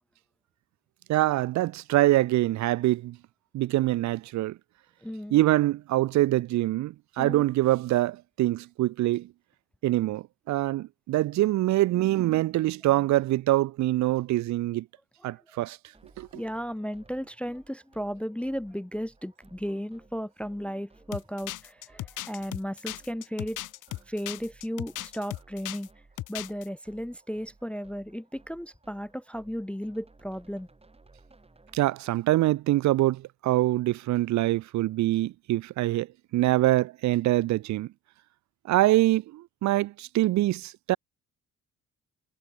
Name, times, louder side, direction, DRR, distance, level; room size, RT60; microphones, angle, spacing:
voice 1, 1.1-3.2 3.5-4.6 5.3-9.3 9.8-14.9 15.2-15.8 16.2-16.3 31.7-36.1 36.3-37.9 38.7-41.0, right 16 dB, 65° right, 0.5 m, -24 dB
voice 2, 5.0-5.4 7.2-7.5 15.2-15.3 16.3-23.6 24.1-25.9 26.3-30.7, equal, 5° left, 0.4 m, -35 dB
sound 1, 15.9-31.8, right 3 dB, 20° right, 7.0 m, -59 dB
sound 2, 21.1-25.9 26.2-26.7, left 16 dB, 85° left, 2.0 m, -37 dB
cardioid pair, 90°, 30 cm